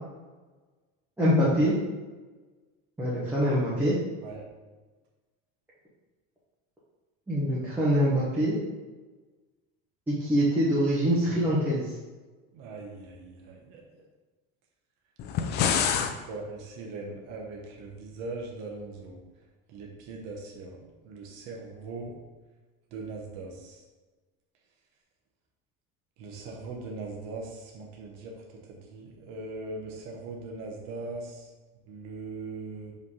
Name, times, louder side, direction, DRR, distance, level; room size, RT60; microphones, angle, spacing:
voice 1, 1.2-1.7 3.0-3.9 7.3-8.6 10.1-11.9, equal, 5° right, -9 dB, 0.9 m, -24 dB
voice 2, 12.5-13.8 15.4-19.2 19.7-20.8 21.0-22.1 22.9-23.8 26.2-28.3 28.6-31.5 31.9-32.9, right 3 dB, 55° right, -1 dB, 1.1 m, -40 dB
sound 1, 15.2-16.1, left 8 dB, 35° left, 0.4 m, -26 dB
5.3 x 3.4 x 5.4 m, 1.3 s
cardioid pair, 170°, 30 cm